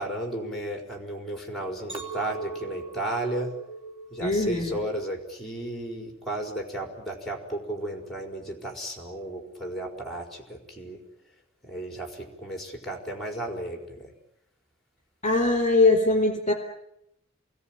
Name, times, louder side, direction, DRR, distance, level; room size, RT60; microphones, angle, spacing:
voice 1, 0.0-3.5 4.1-11.0 11.6-14.1, right 1 dB, ahead, 4 dB, 4.8 m, -34 dB
Chink clink, 1.9-6.2 6.7-7.1, right 3 dB, 30° right, 3.2 m, -41 dB
voice 2, 4.2-4.8 15.2-16.5, left 2 dB, 40° left, 5 dB, 4.0 m, -21 dB
28.5 x 21.0 x 9.1 m, 0.78 s
head